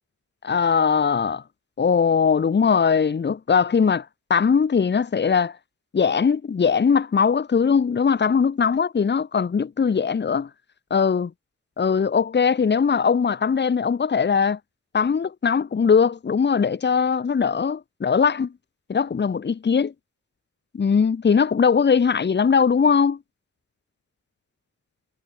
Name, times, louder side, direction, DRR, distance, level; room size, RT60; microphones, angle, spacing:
voice 1, 0.4-1.4 1.8-5.6 5.9-10.5 10.9-11.3 11.8-14.6 14.9-18.5 18.9-19.9 20.7-23.2, left 6 dB, 35° left, 0.9 m, -20 dB
wide cardioid pair, 155°, 31 cm